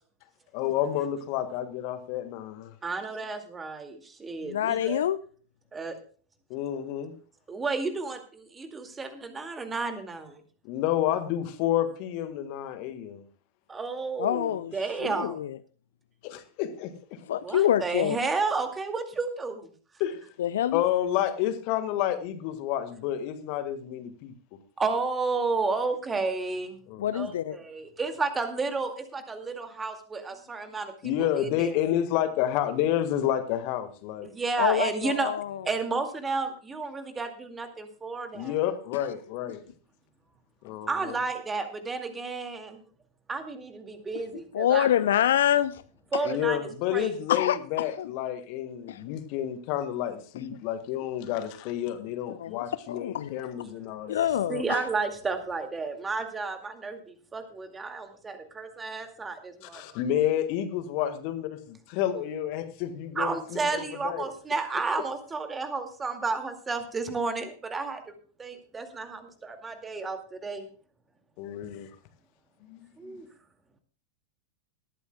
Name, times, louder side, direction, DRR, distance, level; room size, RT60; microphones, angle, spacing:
voice 1, 0.5-2.7 6.5-7.1 10.6-13.2 16.2-17.2 20.0-20.2 20.7-24.3 26.9-27.1 31.0-34.3 38.3-39.6 40.6-41.2 46.2-54.2 59.6-64.3 71.4-71.9 72.7-73.1, left 11 dB, 45° left, 1.7 m, -30 dB
voice 2, 2.8-5.0 5.7-6.0 7.5-10.4 13.7-15.4 17.4-19.7 24.8-26.8 27.1-30.9 31.3-31.8 34.2-35.3 35.7-38.6 40.9-42.8 43.3-44.9 46.1-47.2 54.5-59.8 63.2-68.1 68.4-70.6 73.0-73.3, right 4 dB, 15° right, 2.2 m, -32 dB
voice 3, 4.4-5.2 14.2-14.7 15.0-15.6 17.3-18.2 20.4-20.8 27.0-27.6 34.6-35.6 44.5-45.8 47.3-48.1 48.9-49.0 52.4-53.4 54.1-54.9, left 11 dB, 60° left, 0.5 m, -26 dB
19.0 x 13.5 x 2.3 m
figure-of-eight pair, 90°, 0 cm